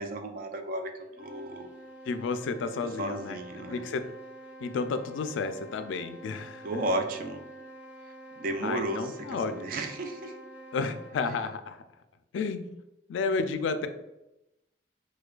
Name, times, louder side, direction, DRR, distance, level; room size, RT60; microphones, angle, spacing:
voice 1, 0.0-1.7 2.8-3.9 6.6-7.4 8.4-10.4, right 1 dB, 50° right, 5 dB, 0.4 m, -33 dB
sound 1, 1.0-11.3, right 1 dB, 10° right, 0.7 m, -47 dB
voice 2, 2.1-4.0 4.6-6.8 8.6-9.5 10.7-11.8 12.3-12.7 13.1-13.9, left 4 dB, 80° left, 10 dB, 0.3 m, -32 dB
4.7 x 2.2 x 2.2 m, 0.94 s
head